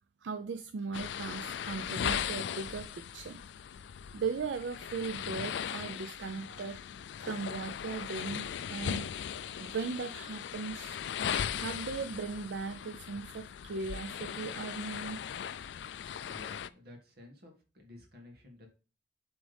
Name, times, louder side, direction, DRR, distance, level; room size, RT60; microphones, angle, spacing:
voice 1, 0.2-3.4 4.1-6.8 7.2-9.1 9.6-11.0 11.6-15.2, right 4 dB, 80° right, 0.4 m, -38 dB
sound 1, 0.9-16.7, left 8 dB, 70° left, 0.3 m, -38 dB
voice 2, 15.8-18.7, left 2 dB, 60° right, 1.8 m, -54 dB
7.7 x 3.7 x 3.4 m
head